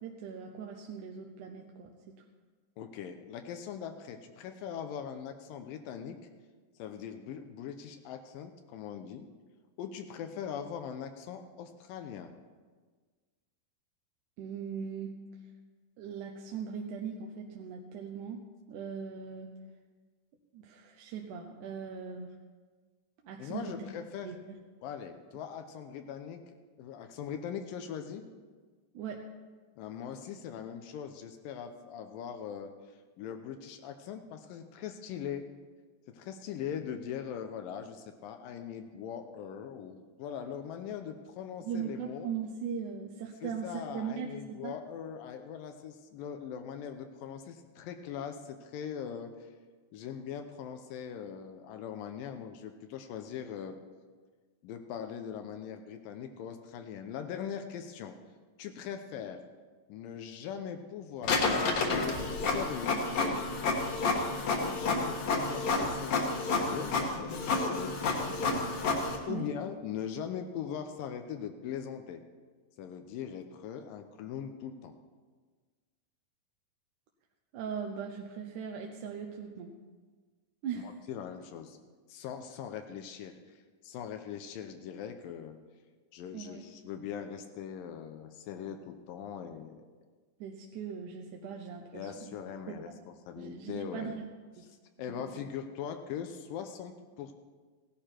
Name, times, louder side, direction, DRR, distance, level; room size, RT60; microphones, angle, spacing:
voice 1, 0.0-1.9 14.4-15.1 16.0-18.4 18.7-19.5 20.5-22.4 23.2-23.9 24.2-24.6 28.9-29.2 41.6-44.8 69.3-69.5 77.5-79.7 80.6-80.9 86.3-86.7 90.4-92.4 92.7-93.0 93.4-94.3 94.6-94.7 95.1-95.4, right 6 dB, 75° right, 1 dB, 2.2 m, -39 dB
voice 2, 2.8-6.2 6.8-9.3 9.8-12.3 23.4-24.3 24.8-28.2 29.8-32.7 33.2-35.5 36.1-42.3 43.4-49.5 49.9-53.8 54.6-58.2 58.6-59.4 59.9-63.0 64.5-68.4 69.0-72.2 72.8-74.9 80.8-81.8 82.1-85.6 86.1-89.8 91.9-92.9 93.3-94.1 95.0-97.3, left 8 dB, 85° left, 6 dB, 2.5 m, -41 dB
Printer, 61.2-69.2, left 3 dB, 60° left, 2.6 m, -30 dB
17.0 x 11.5 x 4.4 m, 1.4 s
omnidirectional pair, 3.9 m